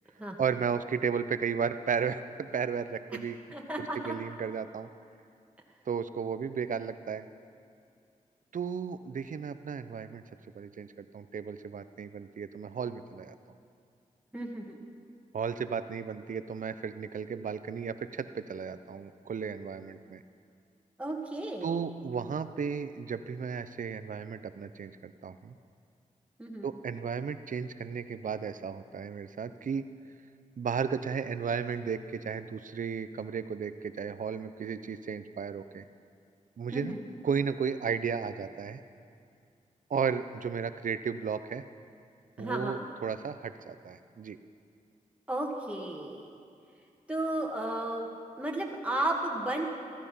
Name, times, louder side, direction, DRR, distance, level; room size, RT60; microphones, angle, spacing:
voice 1, 0.4-3.4 3.8-4.9 5.9-7.3 8.5-10.2 10.5-10.9 11.1-13.4 15.3-20.2 21.6-25.6 26.6-29.8 30.6-35.9 36.6-37.0 37.2-38.8 39.9-41.6 42.4-44.4, right 6 dB, 60° right, 12 dB, 0.7 m, -34 dB
voice 2, 3.5-4.1 14.3-14.8 21.0-21.8 26.4-26.7 36.7-37.0 42.4-42.8 45.3-46.3 47.1-48.1 48.4-49.7, right 1 dB, 10° right, -1 dB, 2.1 m, -33 dB
15.0 x 12.0 x 5.5 m, 2.4 s
cardioid pair, 50°, 15 cm